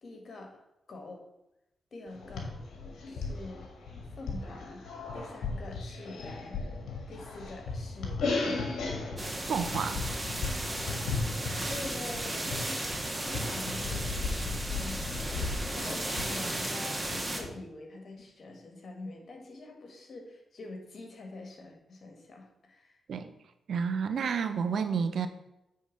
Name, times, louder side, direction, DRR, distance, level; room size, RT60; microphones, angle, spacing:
voice 1, 0.0-0.6 0.9-1.3 1.9-2.5 3.1-3.7 4.1-4.8 5.1-6.6 7.1-8.6 11.4-15.2 15.7-23.0, left 2 dB, 60° left, 2 dB, 1.9 m, -45 dB
sound 1, 2.1-17.5, left 3 dB, 75° left, 1.5 m, -36 dB
sound 2, 9.2-17.4, right 1 dB, 25° right, 1.9 m, -35 dB
voice 2, 9.5-10.0 23.1-23.3 23.7-25.3, right 6 dB, 70° right, 10 dB, 0.7 m, -30 dB
8.5 x 4.0 x 5.3 m, 0.89 s
supercardioid pair, 40°, 0 cm